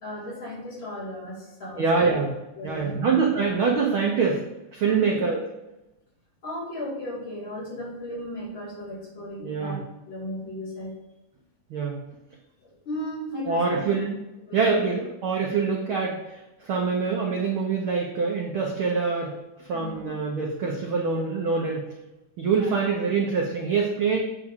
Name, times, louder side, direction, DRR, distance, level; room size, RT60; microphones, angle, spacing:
voice 1, 0.0-2.2 2.6-3.0 4.8-5.2 6.4-9.8 10.1-11.0 12.6-13.9 14.5-14.8 19.7-20.2 22.5-22.7, left 1 dB, 40° left, -7 dB, 3.6 m, -35 dB
voice 2, 1.8-2.3 2.6-4.4 4.7-5.4 9.4-9.8 11.7-12.0 13.5-14.2 14.5-21.9 22.4-24.2, right 5 dB, 70° right, -1 dB, 1.2 m, -25 dB
8.3 x 3.7 x 6.6 m, 0.97 s
omnidirectional pair, 3.6 m